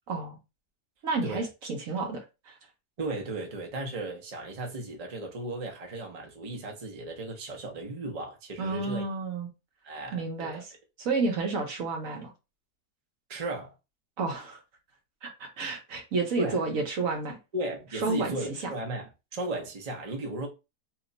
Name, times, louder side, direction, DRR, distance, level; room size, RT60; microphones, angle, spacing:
voice 1, 1.0-2.5 8.6-9.5 10.1-10.7 11.0-12.3 14.2-14.6 15.2-17.4 17.9-18.3 18.6-18.7, right 3 dB, 60° right, 1.2 m, -30 dB
voice 2, 3.0-9.0 9.8-10.6 13.3-13.7 16.4-16.6 17.5-20.5, right 2 dB, 35° right, 0.7 m, -35 dB
2.9 x 2.3 x 3.9 m
omnidirectional pair, 1.7 m